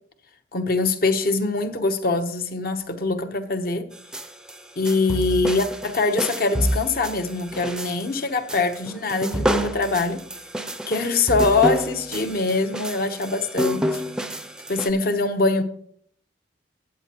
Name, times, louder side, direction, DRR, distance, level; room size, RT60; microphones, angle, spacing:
voice 1, 0.5-3.9 4.8-10.2 10.9-14.0 14.7-15.6, left 3 dB, 50° left, 0.9 m, -23 dB
sound 1, 3.9-14.9, equal, 5° right, 0.4 m, -28 dB
14.5 x 8.4 x 2.9 m
head